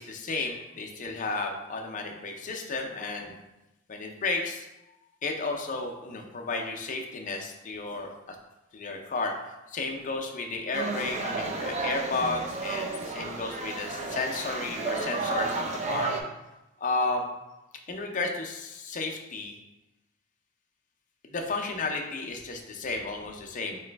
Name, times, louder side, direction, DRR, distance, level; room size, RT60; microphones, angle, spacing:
voice 1, 0.0-3.3 3.9-4.7 5.2-8.4 8.7-16.1 16.8-17.3 17.9-19.5 21.2-23.8, left 3 dB, 40° left, 2 dB, 0.5 m, -33 dB
sound 1, 10.7-16.2, right 3 dB, 30° right, 0.4 m, -32 dB
3.9 x 3.0 x 3.3 m, 0.97 s
head